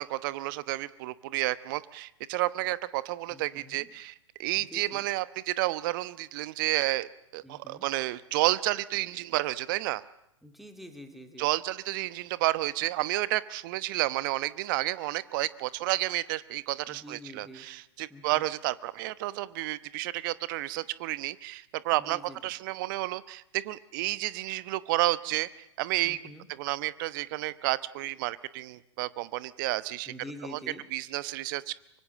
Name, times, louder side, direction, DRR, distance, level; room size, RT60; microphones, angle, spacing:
voice 1, 0.0-4.1 4.4-10.0 11.4-25.5 25.8-26.2 26.6-30.1 30.5-30.6 30.9-31.7, right 18 dB, 40° right, 17 dB, 1.0 m, -31 dB
voice 2, 3.3-3.9 4.6-5.0 7.4-7.9 10.4-11.5 16.9-17.7 18.1-18.4 21.9-22.4 26.0-26.5 30.1-30.8, equal, ahead, 6 dB, 2.8 m, -46 dB
24.0 x 24.0 x 7.5 m, 0.82 s
figure-of-eight pair, 115°, 16 cm